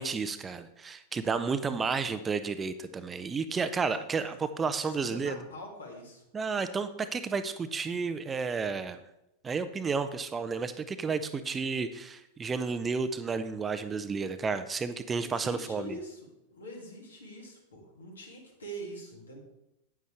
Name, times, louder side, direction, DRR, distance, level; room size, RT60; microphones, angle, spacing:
voice 1, 0.0-5.4 6.3-9.0 9.4-16.0, right 5 dB, 20° right, 11 dB, 0.6 m, -32 dB
voice 2, 4.8-6.2 15.1-16.2 16.5-19.4, equal, 75° left, 0 dB, 2.7 m, -44 dB
9.4 x 9.2 x 3.4 m, 0.85 s
figure-of-eight pair, 90°, 0 cm